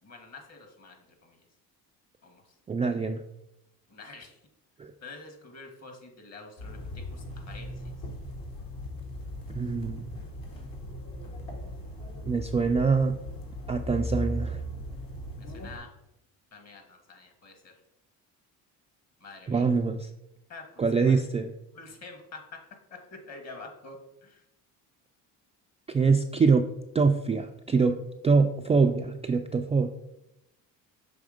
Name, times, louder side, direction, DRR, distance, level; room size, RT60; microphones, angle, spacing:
voice 1, 0.0-1.4 2.2-2.5 3.9-4.4 5.0-7.7 15.4-15.9 16.5-17.7 19.2-19.6 20.5-21.2 21.7-22.6 22.9-24.4, left 3 dB, 40° left, 5 dB, 1.7 m, -47 dB
voice 2, 2.7-3.2 4.8-4.9 9.5-10.0 12.3-13.2 13.7-14.6 19.5-20.1 20.8-21.5 25.9-26.6 26.9-28.0 28.2-29.9, right 4 dB, 20° right, 4 dB, 0.3 m, -24 dB
sound 1, 6.6-15.8, equal, 60° left, 1.8 m, -38 dB
6.1 x 3.3 x 5.1 m, 0.86 s
supercardioid pair, 75°, 39 cm